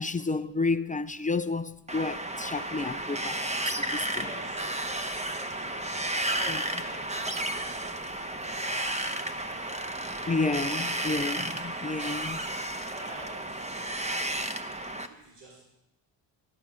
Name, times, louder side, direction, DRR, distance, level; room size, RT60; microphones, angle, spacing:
voice 1, 0.0-3.4 3.6-4.2 8.7-8.8 9.3-9.4 10.3-12.4, left 3 dB, 20° left, 0.4 m, -31 dB
Wind, 1.9-15.1, right 1 dB, 15° right, 1.0 m, -33 dB
voice 2, 3.9-9.7 12.8-14.4 14.9-15.6, right 1 dB, 65° right, 3.7 m, -49 dB
13.0 x 11.5 x 6.2 m
cardioid pair, 105°, 46 cm